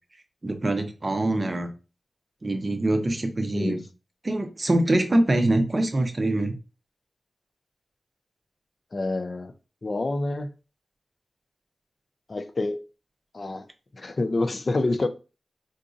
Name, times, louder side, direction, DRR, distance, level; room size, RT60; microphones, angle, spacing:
voice 1, 0.4-1.7 2.4-3.8 4.2-6.5, right 1 dB, 30° right, 0.5 m, -24 dB
voice 2, 8.9-9.5 9.8-10.5 12.3-12.9 13.3-13.7 14.0-15.1, left 2 dB, 40° left, 0.4 m, -27 dB
3.9 x 2.5 x 2.5 m
wide cardioid pair, 135°, 0 cm